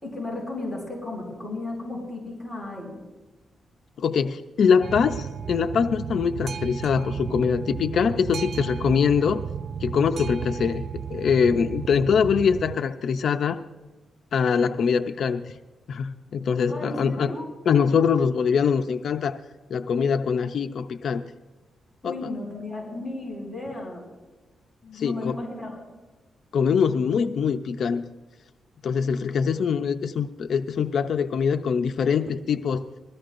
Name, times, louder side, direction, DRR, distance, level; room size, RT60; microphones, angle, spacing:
voice 1, 0.0-3.0 16.7-17.4 22.0-24.0 24.8-25.8, left 2 dB, 5° right, -2 dB, 5.8 m, -34 dB
voice 2, 4.0-9.4 9.8-13.6 14.3-15.6 15.9-17.3 17.7-19.4 19.7-21.2 22.0-22.3 24.9-25.4 26.5-28.0 28.8-32.8, left 6 dB, 65° left, 8 dB, 0.5 m, -23 dB
Boat Water vehicle, 4.8-12.8, right 8 dB, 55° right, 0.3 m, -34 dB
21.5 x 15.0 x 2.6 m, 1.3 s
cardioid pair, 120°, 0 cm